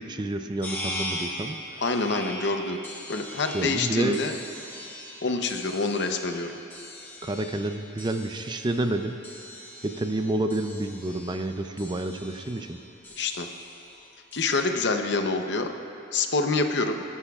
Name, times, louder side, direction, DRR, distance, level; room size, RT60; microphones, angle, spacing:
voice 1, 0.0-1.6 3.5-4.2 7.2-9.2 9.8-12.8, right 2 dB, 20° right, 7 dB, 0.4 m, -29 dB
sound 1, 0.6-14.6, left 1 dB, 10° left, 1.1 m, -41 dB
voice 2, 1.8-2.8 3.1-4.3 5.2-6.6 13.2-13.5 14.3-15.7 16.1-17.0, left 3 dB, 60° left, 5 dB, 0.8 m, -26 dB
27.5 x 11.0 x 2.4 m, 2.9 s
head